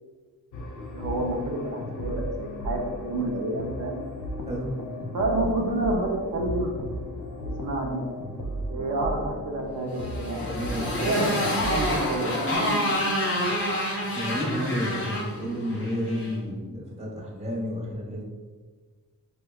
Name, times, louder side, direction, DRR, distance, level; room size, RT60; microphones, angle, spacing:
sound 1, 0.5-12.1, left 1 dB, 60° left, 0.5 m, -35 dB
voice 1, 0.9-4.0 5.1-6.7 7.6-8.0 8.7-10.5 11.0-12.3 12.6-12.8 14.8-15.1, right 2 dB, 70° right, -1 dB, 0.6 m, -29 dB
voice 2, 4.5-4.8 10.5-10.9 14.1-18.2, equal, 20° right, -4 dB, 1.0 m, -31 dB
Motorcycle, 9.9-16.4, left 1 dB, 35° left, 1.0 m, -28 dB
4.4 x 2.1 x 2.3 m, 1.4 s
cardioid pair, 75°, 34 cm